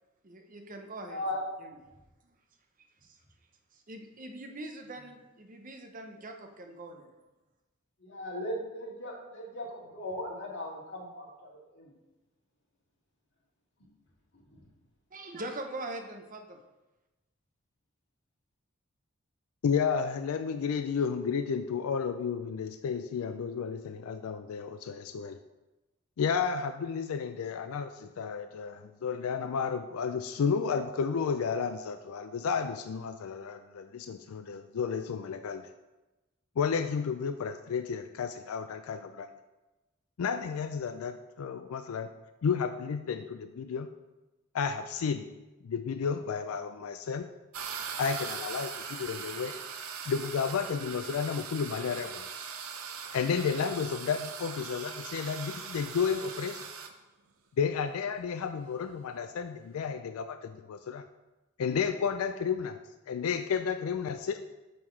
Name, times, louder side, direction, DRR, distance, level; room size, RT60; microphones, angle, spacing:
voice 1, 0.2-1.2 1.6-1.8 2.2-2.4 3.0-3.2 3.9-7.1 15.1-16.6, right 2 dB, 40° right, 5 dB, 0.7 m, -42 dB
voice 2, 1.0-1.4 8.1-11.9 14.3-14.6, left 1 dB, 55° left, -5 dB, 2.2 m, -38 dB
voice 3, 19.6-25.4 26.2-35.6 36.6-39.3 40.2-42.1 42.4-43.9 44.5-45.3 45.6-47.3 48.0-49.5 50.1-52.5 53.1-56.6 57.6-61.0 61.6-62.8 63.1-64.4, left 6 dB, 85° left, 9 dB, 0.4 m, -32 dB
sound 1, 47.5-56.9, right 6 dB, 75° right, 0.7 m, -40 dB
6.4 x 5.6 x 4.5 m, 1.1 s
head